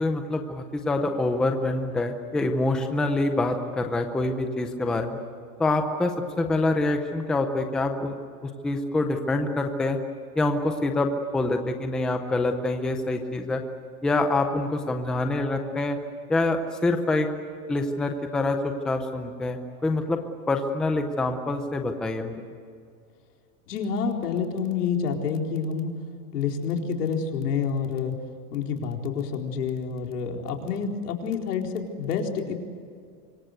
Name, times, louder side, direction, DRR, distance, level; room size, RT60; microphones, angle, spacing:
voice 1, 0.0-5.2 5.6-6.1 6.4-8.1 8.6-10.0 10.4-13.6 14.0-16.0 16.3-17.3 17.7-20.2 20.5-22.3, left 2 dB, ahead, 5 dB, 0.6 m, -26 dB
voice 2, 23.7-25.9 26.3-28.1 28.5-32.5, left 6 dB, 90° left, 2 dB, 4.3 m, -28 dB
25.5 x 23.0 x 8.1 m, 2.3 s
supercardioid pair, 170°, 45 cm